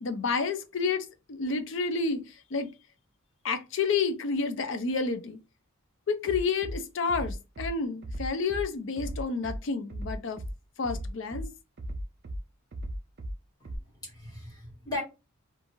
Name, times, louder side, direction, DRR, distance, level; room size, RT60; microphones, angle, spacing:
voice 1, 0.0-2.2 2.5-2.7 3.4-5.4 6.1-10.4 10.8-11.5, left 4 dB, 55° left, 0.4 m, -30 dB
Bass drum, 6.3-6.8 7.1-7.7 8.0-8.6 9.0-9.6 9.9-10.5 10.8-11.4 11.8-12.4 12.7-13.3 13.6-13.8, right 1 dB, 50° right, 0.4 m, -36 dB
voice 2, 13.6-15.0, left 2 dB, 15° left, 1.1 m, -38 dB
2.5 x 2.4 x 2.9 m
head